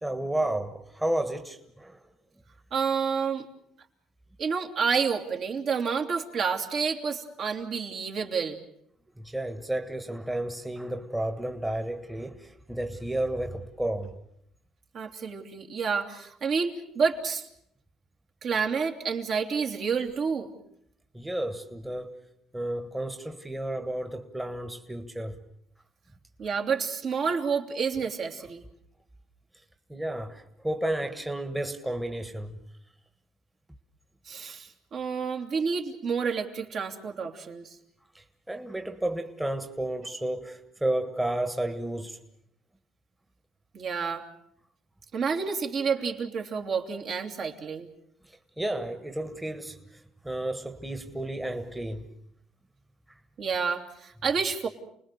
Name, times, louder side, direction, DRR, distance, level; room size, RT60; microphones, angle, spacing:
voice 1, 0.0-2.0 9.2-14.2 21.1-22.1 22.5-25.4 29.9-32.6 38.1-42.2 48.2-52.1 53.1-53.2, right 1 dB, 10° right, 1.6 m, -32 dB
voice 2, 2.7-3.4 4.4-8.6 14.9-17.5 18.4-20.5 26.4-28.6 34.3-37.7 43.7-44.2 45.1-47.9 53.4-54.7, right 5 dB, 55° right, 3.0 m, -29 dB
29.5 x 20.0 x 6.8 m
cardioid pair, 100°, 0 cm